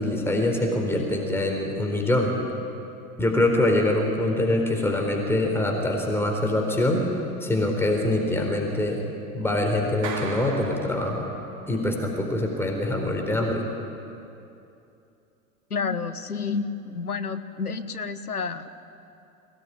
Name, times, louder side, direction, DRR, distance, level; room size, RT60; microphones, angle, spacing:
voice 1, 0.0-2.3 3.2-7.1 7.4-9.0 9.3-11.3 11.7-13.6, left 1 dB, 5° left, 1 dB, 4.0 m, -24 dB
Clapping, 10.0-11.8, right 4 dB, 40° right, 3.8 m, -37 dB
voice 2, 15.7-18.8, left 5 dB, 90° left, 10 dB, 1.2 m, -30 dB
23.5 x 18.0 x 9.9 m, 2.7 s
figure-of-eight pair, 85°, 44 cm